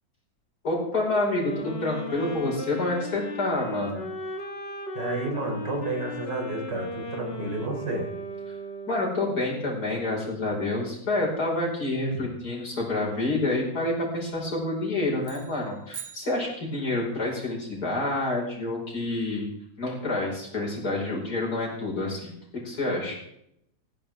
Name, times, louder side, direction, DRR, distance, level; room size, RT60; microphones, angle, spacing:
voice 1, 0.6-4.1 8.5-8.6 8.9-19.5 19.8-22.3 22.6-23.2, left 2 dB, 50° left, -2 dB, 5.6 m, -28 dB
sound 1, 1.1-9.3, left 1 dB, 35° left, 1.8 m, -37 dB
voice 2, 4.9-8.1, right 2 dB, 60° right, 1 dB, 4.1 m, -31 dB
sound 2, 15.2-17.1, right 8 dB, 80° right, 3.1 m, -44 dB
18.0 x 16.5 x 3.7 m, 0.76 s
omnidirectional pair, 2.1 m